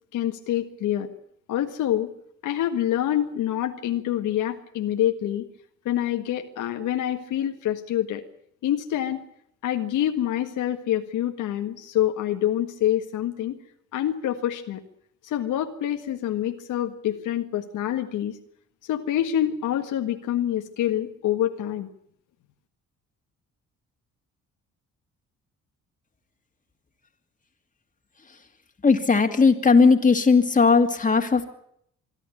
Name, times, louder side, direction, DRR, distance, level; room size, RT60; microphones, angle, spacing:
voice 1, 0.1-1.1 1.5-2.1 2.4-5.5 5.9-8.2 8.6-9.3 9.6-13.6 13.9-14.8 15.2-18.3 18.9-21.9, left 11 dB, 85° left, 5 dB, 1.7 m, -26 dB
voice 2, 28.8-31.5, left 4 dB, 25° left, 5 dB, 2.5 m, -18 dB
25.5 x 11.5 x 9.8 m, 0.70 s
cardioid pair, 90°, 30 cm